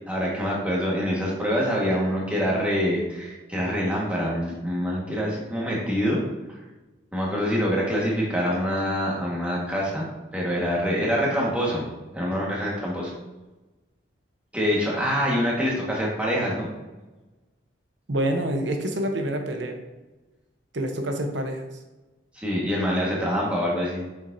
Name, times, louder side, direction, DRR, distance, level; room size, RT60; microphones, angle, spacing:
voice 1, 0.1-6.3 7.1-10.1 10.3-13.1 14.5-16.7 22.4-24.0, equal, 5° right, -4 dB, 1.5 m, -25 dB
voice 2, 18.1-19.8 20.7-21.7, right 1 dB, 75° right, 4 dB, 0.9 m, -27 dB
7.0 x 6.2 x 2.7 m, 1.1 s
head